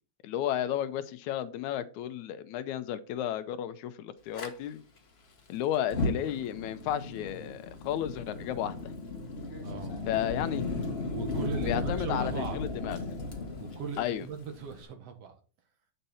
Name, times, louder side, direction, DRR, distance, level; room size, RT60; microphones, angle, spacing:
voice 1, 0.2-4.8 5.5-8.9 10.1-10.6 11.7-13.0 14.0-14.3, left 11 dB, 80° left, 2.1 m, -33 dB
Fire, 4.3-4.5 5.8-14.8, left 3 dB, 65° left, 0.6 m, -35 dB
voice 2, 9.6-10.0 11.1-12.6 13.6-15.4, right 5 dB, 60° right, 2.2 m, -38 dB
9.1 x 6.7 x 4.2 m
omnidirectional pair, 3.4 m